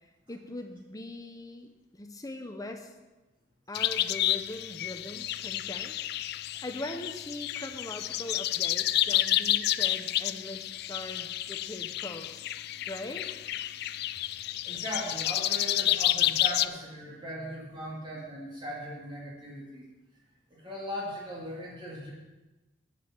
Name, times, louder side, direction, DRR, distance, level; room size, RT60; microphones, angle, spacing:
voice 1, 0.3-2.9 3.7-6.0 6.4-12.4 12.9-13.3, left 1 dB, 20° left, 5 dB, 0.7 m, -41 dB
sound 1, 3.7-16.7, left 13 dB, 55° left, 0.3 m, -30 dB
voice 2, 14.6-19.9 20.5-22.1, equal, 25° right, -5 dB, 2.3 m, -39 dB
8.6 x 7.4 x 7.4 m, 1.1 s
head